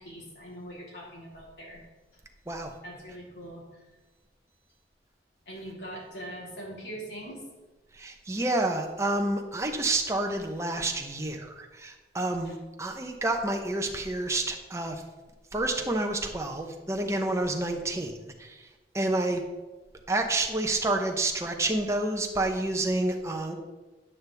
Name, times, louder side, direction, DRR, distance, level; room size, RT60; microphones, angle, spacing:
voice 1, 0.0-1.8 2.8-3.7 5.5-7.4 12.4-12.5, right 1 dB, 75° left, -5 dB, 3.4 m, -42 dB
voice 2, 7.9-15.0 15.5-18.7 18.9-19.4 20.1-23.5, right 2 dB, 15° right, 3 dB, 0.8 m, -29 dB
9.8 x 8.6 x 3.4 m, 1.2 s
head